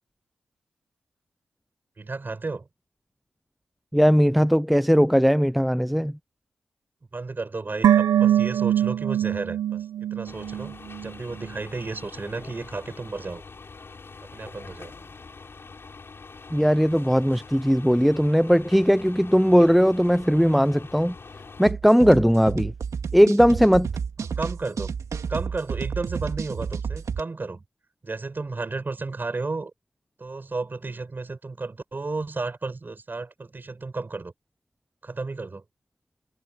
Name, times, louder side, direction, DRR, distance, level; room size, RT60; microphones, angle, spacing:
voice 1, 2.0-2.7 7.1-10.7 11.0-13.4 14.3-15.0 24.2-24.9 25.3-27.6 28.0-29.7 30.2-34.3 35.0-35.6, right 3 dB, 30° right, 7.2 m, -33 dB
voice 2, 3.9-6.1 16.5-21.1 21.6-22.7 23.1-23.9, equal, ahead, 0.6 m, -19 dB
sound 1, 7.8-11.1 11.4-11.5, right 11 dB, 75° right, 0.9 m, -23 dB
sound 2, 10.2-21.7, left 4 dB, 40° left, 7.3 m, -44 dB
sound 3, 21.7-27.2, right 6 dB, 60° right, 2.1 m, -31 dB
cardioid pair, 70°, 6 cm